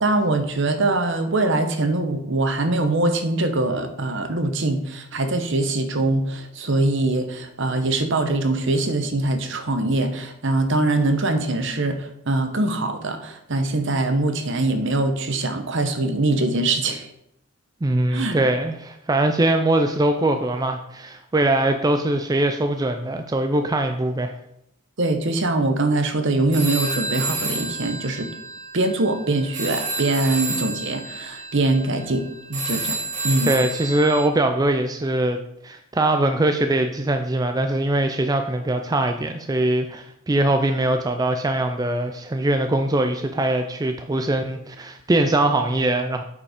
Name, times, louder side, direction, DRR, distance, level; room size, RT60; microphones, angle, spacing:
voice 1, 0.0-17.1 18.1-18.4 25.0-28.3 28.7-33.0 33.2-33.5, right 2 dB, 55° right, 8 dB, 0.9 m, -23 dB
voice 2, 17.8-24.4 33.5-46.2, right 1 dB, 15° right, 6 dB, 0.4 m, -22 dB
sound 1, 26.5-34.2, right 3 dB, 35° right, 1.3 m, -30 dB
8.3 x 5.1 x 5.0 m, 0.79 s
head